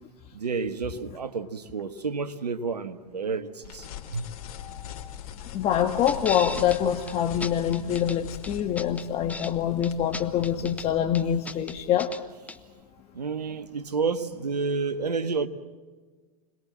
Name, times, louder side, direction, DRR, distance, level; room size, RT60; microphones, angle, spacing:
voice 1, 0.3-3.9 4.1-4.3 13.1-15.5, right 4 dB, 90° right, 1.7 m, -30 dB
sound 1, 3.6-10.9, left 9 dB, 60° left, 3.6 m, -42 dB
voice 2, 4.6-5.1 5.5-12.1, left 9 dB, 30° left, 1.6 m, -25 dB
sound 2, 6.1-6.8 7.1-7.2 7.4-8.2 8.4-9.5 9.8-10.9 11.1-12.2 12.5-12.6, left 3 dB, 5° left, 1.2 m, -36 dB
26.5 x 21.0 x 7.5 m
hypercardioid pair, 115°, 20 cm